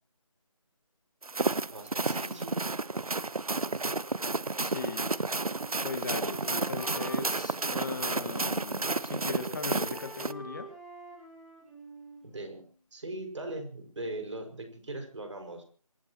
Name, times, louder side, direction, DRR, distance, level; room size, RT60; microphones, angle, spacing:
sound 1, 1.2-10.3, right 3 dB, 85° right, 1.0 m, -31 dB
voice 1, 1.7-2.8 12.2-12.6 12.9-15.6, right 2 dB, 55° right, 5 dB, 5.6 m, -40 dB
voice 2, 4.6-5.2 5.8-10.7, left 4 dB, 35° left, 8 dB, 2.1 m, -39 dB
Wind instrument woodwind instrument, 5.3-8.4 8.7-12.7, right 1 dB, ahead, 4.2 m, -48 dB
27.0 x 14.0 x 3.0 m, 0.40 s
figure-of-eight pair, 165°, 18 cm